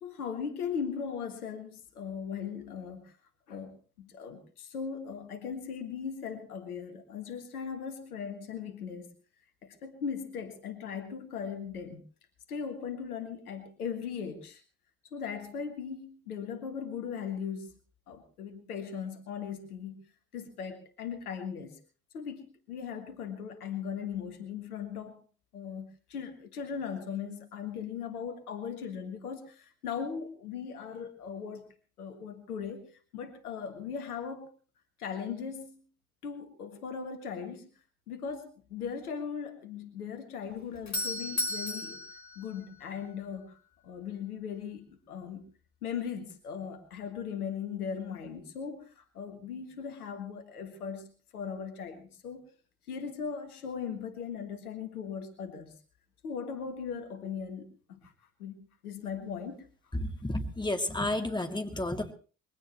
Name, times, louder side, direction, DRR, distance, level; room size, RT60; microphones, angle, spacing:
voice 1, 0.0-3.2 3.5-9.1 9.6-12.0 12.5-14.6 15.0-17.7 18.1-20.0 20.3-21.8 22.1-25.2 25.5-31.6 32.0-34.5 35.0-35.8 36.2-37.7 38.1-42.0 42.4-43.6 43.8-45.5 45.8-52.5 52.9-55.8 56.2-58.1 58.4-58.6 58.8-59.7, left 7 dB, 80° left, 8 dB, 1.8 m, -38 dB
Doorbell, 40.5-43.3, left 1 dB, 40° left, 4.7 m, -36 dB
voice 2, 59.9-62.1, left 1 dB, 10° left, 5 dB, 2.6 m, -31 dB
21.5 x 17.0 x 3.1 m, 0.37 s
figure-of-eight pair, 45°, 44 cm